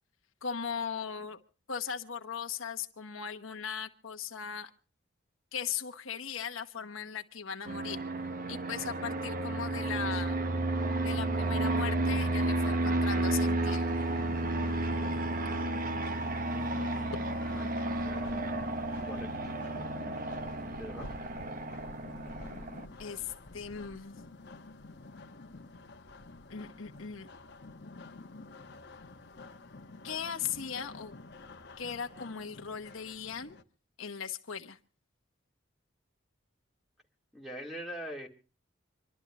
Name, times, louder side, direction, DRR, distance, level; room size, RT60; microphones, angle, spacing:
voice 1, 0.4-1.4 1.7-4.7 5.5-8.0 8.5-10.4 11.0-13.9 23.0-24.2 26.5-27.3 30.0-31.1 31.8-33.5 34.0-34.8, left 7 dB, 85° left, 1.1 m, -38 dB
Fixed-wing aircraft airplane, 7.7-22.9, right 2 dB, 45° right, 0.9 m, -32 dB
sound 1, 13.9-33.6, left 2 dB, 55° left, 1.1 m, -49 dB
voice 2, 17.2-18.4 19.1-19.5 20.8-21.1 37.3-38.3, equal, ahead, 2.2 m, -43 dB
26.5 x 12.0 x 3.0 m
head